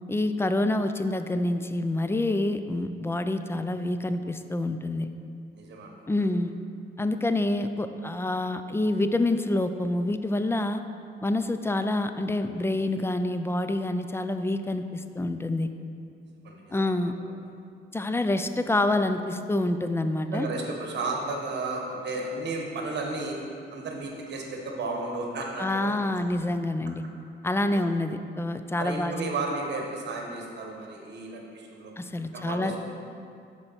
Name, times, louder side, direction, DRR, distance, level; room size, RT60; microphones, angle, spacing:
voice 1, 0.1-5.1 6.1-6.5 7.0-10.8 11.2-15.7 16.7-17.1 17.9-20.5 25.6-27.0 27.4-29.2 32.0-32.8, left 2 dB, 10° left, 9 dB, 0.3 m, -27 dB
voice 2, 5.5-6.0 16.4-17.1 20.3-23.4 23.7-26.0 27.7-27.8 28.8-31.9 32.3-32.8, right 3 dB, 60° right, 0 dB, 1.3 m, -33 dB
6.6 x 4.5 x 5.7 m, 2.4 s
cardioid pair, 90°, 20 cm